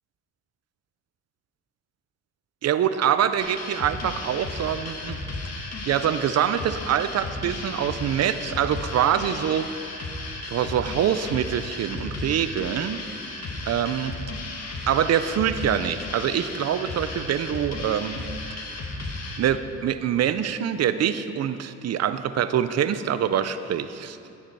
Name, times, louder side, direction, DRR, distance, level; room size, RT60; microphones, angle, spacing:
voice 1, 2.6-5.2 5.9-9.7 10.5-13.0 13.6-14.1 14.9-18.3 19.4-24.2, right 9 dB, 55° right, 12 dB, 0.6 m, -25 dB
sound 1, 3.4-19.4, left 2 dB, 55° left, 1.7 m, -34 dB
17.5 x 6.6 x 4.7 m, 2.6 s
cardioid pair, 90°, 30 cm